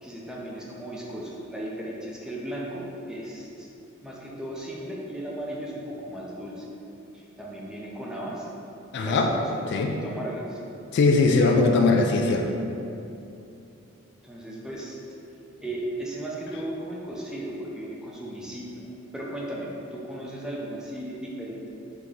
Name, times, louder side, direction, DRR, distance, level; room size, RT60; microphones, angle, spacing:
voice 1, 0.0-3.7 4.0-6.7 7.1-8.5 9.0-10.6 14.2-15.0 15.6-21.7, right 1 dB, 5° right, -4 dB, 0.5 m, -36 dB
voice 2, 8.9-9.3 9.7-9.9 10.9-12.5, left 3 dB, 55° left, 3 dB, 0.3 m, -20 dB
3.8 x 3.4 x 3.1 m, 2.8 s
head